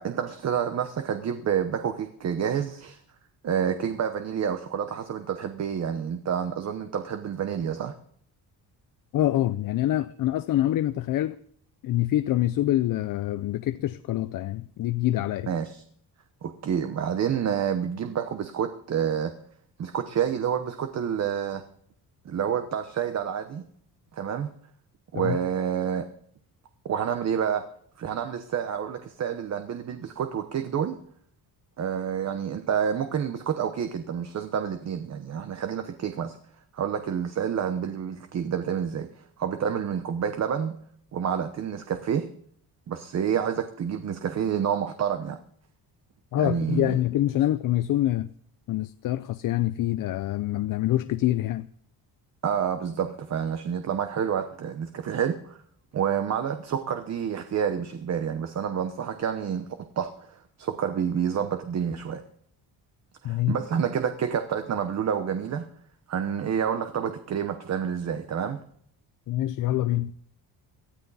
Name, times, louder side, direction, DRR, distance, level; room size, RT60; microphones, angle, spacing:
voice 1, 0.0-3.0 3.4-7.9 15.5-15.8 16.4-19.3 19.8-21.6 22.2-23.6 24.1-24.5 25.1-26.1 26.8-27.6 28.0-31.0 31.8-36.4 36.7-40.8 41.1-42.3 42.9-45.4 46.4-47.0 52.4-55.6 55.9-59.7 60.0-60.3 60.6-62.2 63.2-65.7 66.1-68.6, right 8 dB, 40° right, 1.0 m, -28 dB
voice 2, 9.1-11.4 11.8-15.5 25.1-25.4 46.3-48.3 48.7-51.7 63.2-63.6 69.3-70.1, left 14 dB, 55° left, 0.5 m, -25 dB
18.5 x 13.0 x 4.1 m
cardioid pair, 160°, 40 cm